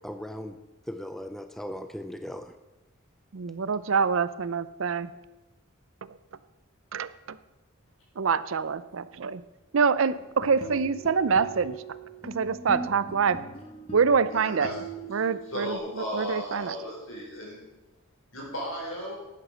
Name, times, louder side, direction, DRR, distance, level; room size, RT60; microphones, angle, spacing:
voice 1, 0.0-0.5 0.9-2.5, equal, ahead, 8 dB, 0.4 m, -38 dB
voice 2, 3.3-5.1 6.9-7.4 8.2-9.4 9.7-11.8 12.2-13.4 13.9-14.7 15.1-16.8, right 5 dB, 70° right, 16 dB, 0.5 m, -26 dB
sound 1, 10.2-15.8, right 3 dB, 30° left, 1.4 m, -41 dB
voice 3, 14.3-15.0 15.5-17.6 18.3-19.1, equal, 70° left, -2 dB, 4.9 m, -35 dB
11.5 x 9.3 x 6.2 m, 1.1 s
head